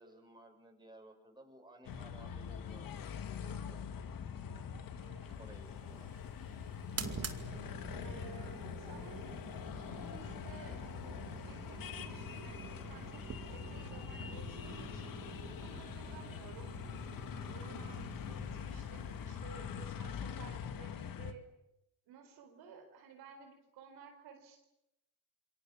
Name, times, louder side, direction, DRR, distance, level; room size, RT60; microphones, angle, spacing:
voice 1, 0.0-3.1 3.3-3.9 5.4-6.1, right 1 dB, 10° right, 3 dB, 7.2 m, -57 dB
sound 1, 1.9-21.3, left 7 dB, 60° left, 2.0 m, -44 dB
voice 2, 4.7-5.3 8.0-9.4 9.7-15.2 15.6-16.7 17.4-21.4 22.1-24.7, right 5 dB, 80° right, 4 dB, 4.4 m, -55 dB
sound 2, 5.1-20.4, right 6 dB, 40° right, 2.4 m, -49 dB
27.5 x 22.5 x 7.3 m, 0.87 s
supercardioid pair, 75°, 38 cm